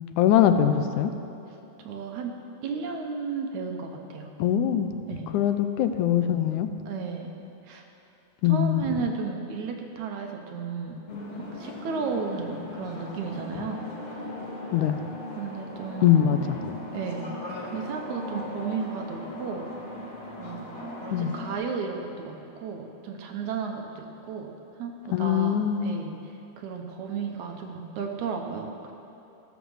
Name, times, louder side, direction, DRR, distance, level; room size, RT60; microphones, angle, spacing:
voice 1, 0.2-1.1 4.4-4.9 5.3-6.7 8.4-8.9 14.7-15.0 16.0-16.8 21.1-21.3 25.1-25.9, left 10 dB, 85° left, 9 dB, 2.1 m, -22 dB
voice 2, 1.8-2.3 2.6-4.3 5.1-5.3 6.9-7.3 7.7-7.8 8.4-11.0 11.4-13.9 15.3-16.2 16.9-17.3 17.7-19.7 20.4-24.5 24.8-26.2 26.6-28.9, right 5 dB, 75° right, 3 dB, 2.3 m, -34 dB
sound 1, 11.1-21.6, left 1 dB, 30° left, 1.4 m, -38 dB
14.5 x 7.1 x 6.3 m, 2.9 s
omnidirectional pair, 3.5 m